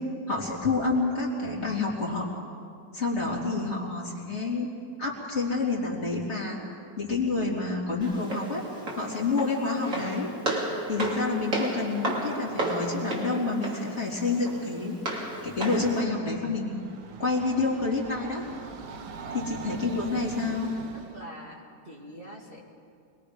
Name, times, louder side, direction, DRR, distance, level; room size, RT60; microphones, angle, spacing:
voice 1, 0.3-2.3 2.9-4.7 5.0-6.6 7.0-8.6 9.0-10.3 10.9-15.0 15.4-16.8 17.2-18.4 19.3-20.7, left 3 dB, 40° left, -3 dB, 3.3 m, -28 dB
Walk footsteps, 8.0-16.0, right 2 dB, 50° right, 3.1 m, -33 dB
Train, 16.3-21.2, right 5 dB, 70° right, 1.7 m, -41 dB
voice 2, 20.9-22.6, equal, 30° right, -3 dB, 2.4 m, -45 dB
25.0 x 21.0 x 5.2 m, 2.3 s
omnidirectional pair, 1.9 m